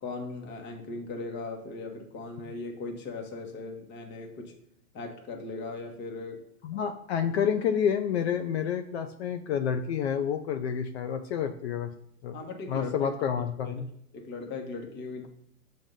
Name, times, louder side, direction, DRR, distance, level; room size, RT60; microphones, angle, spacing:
voice 1, 0.0-4.5 4.9-6.4 6.7-6.8 12.3-13.1 13.7-13.8 14.1-15.3, left 3 dB, 25° left, 2 dB, 1.0 m, -38 dB
voice 2, 6.6-11.9 12.2-12.3 12.7-13.8, left 8 dB, 45° left, 7 dB, 0.4 m, -29 dB
7.4 x 2.6 x 5.2 m, 0.71 s
hypercardioid pair, 130°, 46 cm